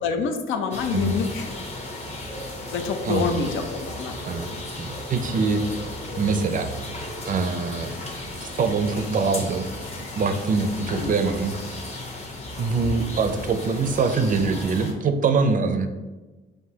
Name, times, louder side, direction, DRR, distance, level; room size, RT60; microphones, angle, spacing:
voice 1, 0.0-1.4 2.7-4.1 10.9-11.1, left 5 dB, 80° left, 5 dB, 0.5 m, -26 dB
sound 1, 0.7-14.9, left 1 dB, 35° left, 0.9 m, -35 dB
voice 2, 3.0-3.4 4.3-4.5 4.8-5.6 6.2-6.7 7.3-7.9 8.4-9.7 10.1-11.5 12.6-15.9, right 4 dB, 45° right, 8 dB, 0.5 m, -24 dB
5.9 x 2.6 x 2.8 m, 1.2 s
cardioid pair, 90°, 20 cm